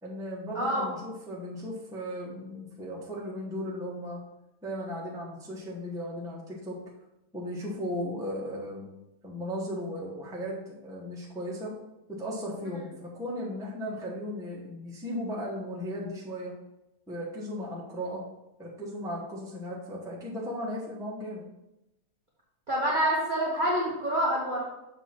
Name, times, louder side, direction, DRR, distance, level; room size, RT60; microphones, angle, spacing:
voice 1, 0.0-4.2 4.6-6.8 7.3-8.9 9.2-11.7 12.1-16.5 17.1-18.2 18.6-21.4, equal, ahead, -4 dB, 0.9 m, -36 dB
voice 2, 0.5-0.9 22.7-24.6, right 1 dB, 35° right, -5 dB, 0.8 m, -27 dB
7.0 x 3.0 x 5.9 m, 0.90 s
omnidirectional pair, 2.2 m